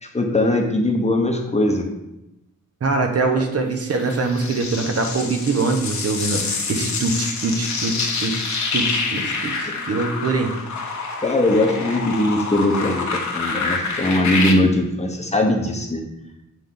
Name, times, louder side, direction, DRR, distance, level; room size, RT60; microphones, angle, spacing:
voice 1, 0.0-1.9 9.6-9.7 11.2-16.0, left 1 dB, 20° left, 1 dB, 0.9 m, -20 dB
voice 2, 2.8-10.5, right 3 dB, 50° right, 4 dB, 0.9 m, -23 dB
sound 1, 3.9-14.5, left 4 dB, 65° left, 1.1 m, -27 dB
7.6 x 3.5 x 3.9 m, 0.91 s
wide cardioid pair, 100°, 31 cm